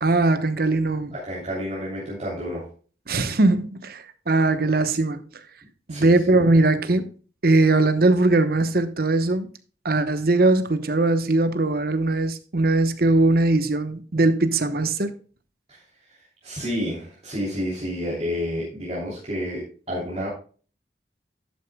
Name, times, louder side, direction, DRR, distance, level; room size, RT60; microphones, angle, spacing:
voice 1, 0.0-1.1 3.1-5.2 5.9-7.1 7.4-9.5 9.8-15.1, right 2 dB, 55° right, 0.9 m, -20 dB
voice 2, 1.1-2.7 5.9-6.2 15.7-15.8 16.4-20.3, equal, 35° right, 3.0 m, -30 dB
11.5 x 8.5 x 2.2 m
head